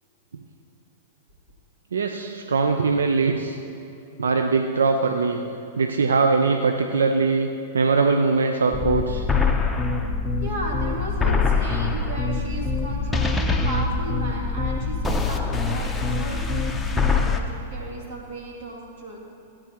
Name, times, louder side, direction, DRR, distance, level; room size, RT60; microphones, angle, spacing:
voice 1, 1.9-3.6 4.2-5.4 5.7-7.5 7.7-9.3, right 4 dB, 80° right, 5 dB, 0.5 m, -21 dB
sound 1, 8.7-17.4, left 4 dB, 10° left, 0.8 m, -24 dB
voice 2, 10.4-19.2, right 1 dB, 55° right, -2 dB, 2.6 m, -35 dB
16.0 x 8.7 x 3.0 m, 2.9 s
hypercardioid pair, 105°, 0 cm